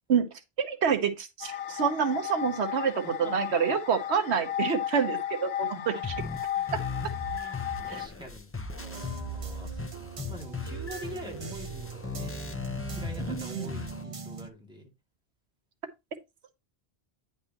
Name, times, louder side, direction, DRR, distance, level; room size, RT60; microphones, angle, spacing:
voice 1, 0.6-6.1 6.7-6.8 7.9-8.0 13.3-13.7, right 7 dB, 80° right, 1.2 m, -27 dB
sound 1, 1.4-8.1, left 11 dB, 70° left, 0.9 m, -34 dB
voice 2, 3.0-3.3 3.7-3.8 5.7-6.0 6.3-6.7 7.3-12.6 12.9-14.9, equal, 5° right, 2.3 m, -46 dB
sound 2, 6.0-14.0, left 3 dB, 15° left, 0.5 m, -37 dB
sound 3, 8.8-14.5, right 5 dB, 35° right, 0.6 m, -41 dB
9.6 x 5.4 x 2.8 m
omnidirectional pair, 1.1 m